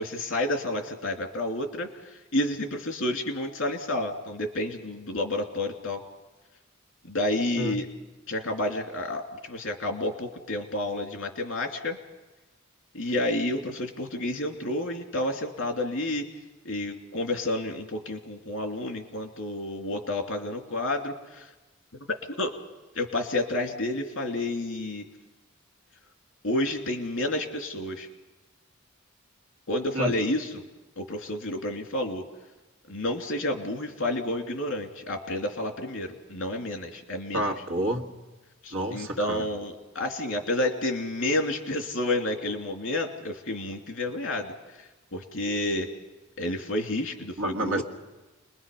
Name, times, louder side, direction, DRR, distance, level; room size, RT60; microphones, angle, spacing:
voice 1, 0.0-6.0 7.0-7.9 8.3-12.0 12.9-16.2 16.6-21.5 22.4-22.5 22.9-25.0 26.4-28.1 29.7-30.6 31.0-32.2 32.9-37.5 38.6-45.9 46.4-47.8, left 1 dB, 65° left, 3 dB, 2.9 m, -30 dB
voice 2, 37.3-38.1 38.7-39.5 47.4-47.8, right 1 dB, 75° right, 1 dB, 1.9 m, -29 dB
29.5 x 21.5 x 5.4 m, 1.1 s
head